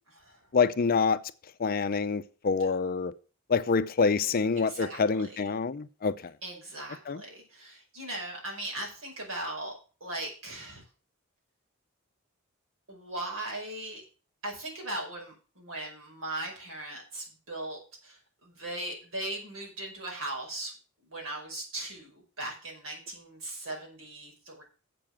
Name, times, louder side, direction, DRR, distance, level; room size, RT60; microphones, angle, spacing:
voice 1, 0.5-1.2 1.6-3.1 3.5-6.3 7.1-7.2, left 5 dB, 45° left, 0.5 m, -26 dB
voice 2, 4.7-5.4 6.4-9.7 10.0-10.8 12.9-14.0 14.4-20.7 21.0-24.6, right 1 dB, 75° right, 5.2 m, -38 dB
7.6 x 6.9 x 7.3 m
head